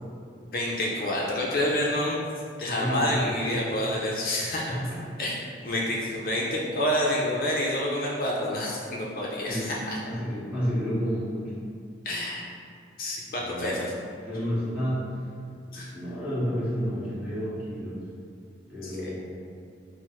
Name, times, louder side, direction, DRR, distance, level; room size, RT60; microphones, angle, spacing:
voice 1, 0.5-2.2 2.6-4.8 5.2-5.3 5.6-10.0 12.0-12.4 13.0-13.9 15.7-15.9 18.8-19.2, left 1 dB, 50° left, -4 dB, 0.5 m, -28 dB
voice 2, 2.7-3.6 4.7-5.0 9.5-11.5 13.4-13.9 14.2-15.2 15.6-18.0 18.7-19.3, equal, 5° right, -11 dB, 1.2 m, -31 dB
4.4 x 2.0 x 4.5 m, 2.4 s
head